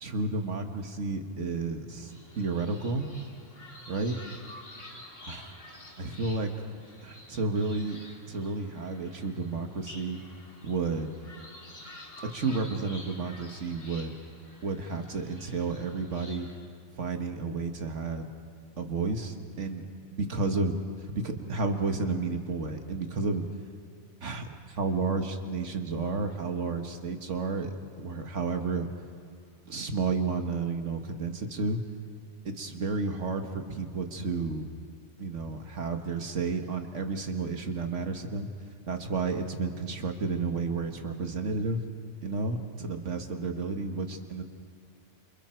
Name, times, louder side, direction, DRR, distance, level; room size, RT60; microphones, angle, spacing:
voice 1, 0.0-3.0 3.9-4.2 5.3-5.5 6.0-6.5 7.0-8.0 8.3-10.2 10.6-11.1 12.2-14.1 14.6-16.5 17.0-18.3 18.8-19.9 20.1-20.8 21.0-23.5 24.2-28.9 29.7-31.8 32.5-34.7 35.2-38.5 38.9-41.8 42.2-44.4, right 4 dB, 80° right, 5 dB, 1.9 m, -31 dB
sound 1, 2.1-16.6, left 1 dB, 85° left, 3.2 m, -49 dB
29.0 x 28.5 x 4.5 m, 2.4 s
omnidirectional pair, 1.2 m